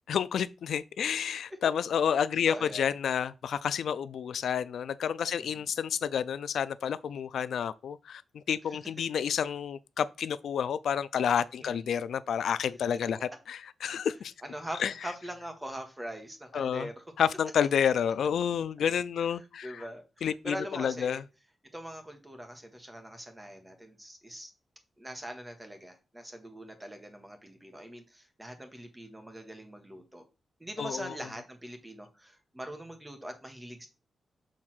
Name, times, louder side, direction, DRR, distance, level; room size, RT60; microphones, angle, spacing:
voice 1, 0.1-14.3 14.8-14.9 16.5-16.9 17.2-19.8 20.2-21.2 30.8-31.1, left 8 dB, 80° left, 0.3 m, -30 dB
voice 2, 2.5-2.9 5.4-5.7 8.7-8.8 11.6-11.9 14.4-17.0 19.6-21.2 21.7-24.5 25.0-30.2 30.6-33.9, equal, 10° right, 1.4 m, -42 dB
6.4 x 3.6 x 6.0 m
wide cardioid pair, 150°, 0 cm